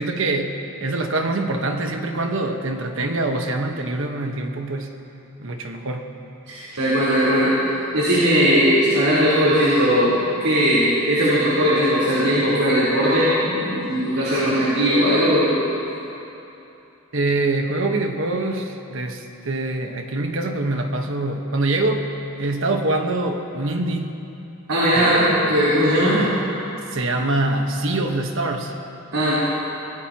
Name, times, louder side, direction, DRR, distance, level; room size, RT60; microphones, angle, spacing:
voice 1, 0.0-4.9 5.4-6.1 17.1-22.1 22.4-24.2 24.9-25.5 26.2-26.4 26.9-28.7, right 2 dB, 60° right, 4 dB, 1.2 m, -24 dB
voice 2, 6.5-15.6 24.7-26.2 29.1-29.3, equal, 90° right, -10 dB, 3.8 m, -18 dB
25.0 x 17.5 x 3.0 m, 2.9 s
head